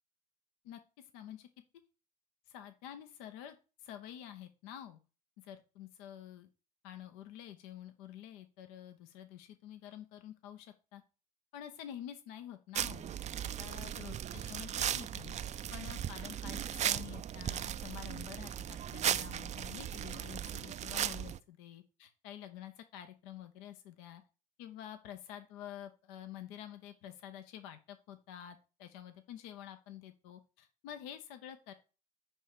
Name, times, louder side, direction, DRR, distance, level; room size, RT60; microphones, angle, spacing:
voice 1, 0.6-1.5 2.5-5.0 5.4-6.5 6.8-11.0 11.5-13.1 13.6-15.4 15.7-24.2 24.6-31.7, left 10 dB, 70° left, 8 dB, 0.8 m, -49 dB
sound 1, 12.7-21.4, right 10 dB, 35° right, 0.5 m, -37 dB
9.9 x 3.4 x 6.6 m, 0.33 s
hypercardioid pair, 60°, 19 cm